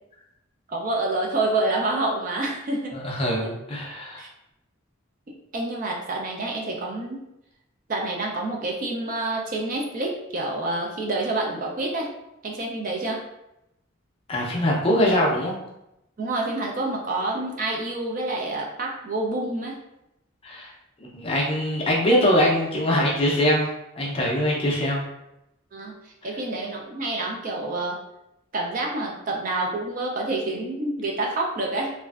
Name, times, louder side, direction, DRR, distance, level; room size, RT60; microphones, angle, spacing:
voice 1, 0.7-3.0 3.4-3.5 4.2-4.3 5.5-7.2 7.9-12.1 12.4-13.2 16.2-19.8 25.7-28.0 28.5-31.9, right 2 dB, 40° right, -1 dB, 0.4 m, -28 dB
voice 2, 2.9-4.2 14.3-15.5 20.4-20.7 21.1-23.7 24.0-25.0, equal, 25° left, -3 dB, 0.5 m, -22 dB
3.0 x 2.5 x 2.3 m, 0.87 s
head